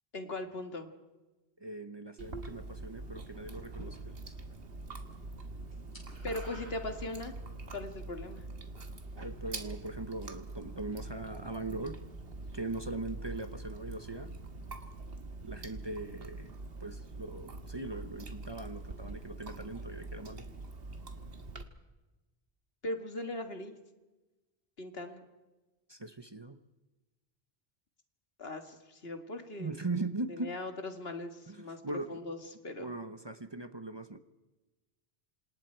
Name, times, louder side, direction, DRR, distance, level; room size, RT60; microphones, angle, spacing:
voice 1, 0.1-0.9 6.2-7.3 7.7-8.4 22.8-23.8 24.8-25.3 28.4-29.7 30.3-31.8 32.1-32.4 32.6-33.0, left 2 dB, 70° left, 6 dB, 2.1 m, -39 dB
voice 2, 1.6-4.2 9.2-12.0 12.5-14.3 15.4-20.5 25.9-26.6 29.6-30.6 31.5-32.2 32.8-34.2, right 2 dB, 25° right, 10 dB, 0.9 m, -40 dB
Chewing mastication, 2.2-21.6, right 2 dB, 70° right, 1.8 m, -44 dB
sound 1, 3.5-4.5 4.8-5.2 5.4-7.5, equal, 50° left, 7.1 m, -52 dB
28.0 x 26.5 x 4.6 m, 1.1 s
omnidirectional pair, 1.0 m